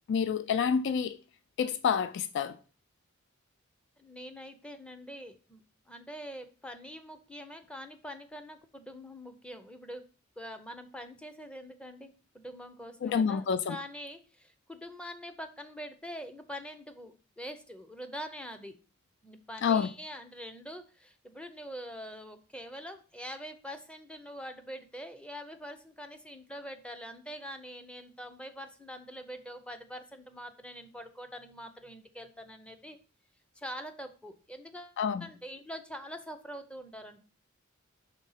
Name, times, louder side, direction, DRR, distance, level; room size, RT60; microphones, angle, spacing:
voice 1, 0.1-1.2 1.6-2.6 13.0-13.8 19.6-19.9 35.0-35.3, left 6 dB, 60° left, 0.3 m, -28 dB
voice 2, 4.0-5.6 5.9-10.0 10.4-18.8 19.2-33.0 33.6-37.2, equal, 5° left, 0.6 m, -44 dB
5.2 x 3.6 x 5.5 m
head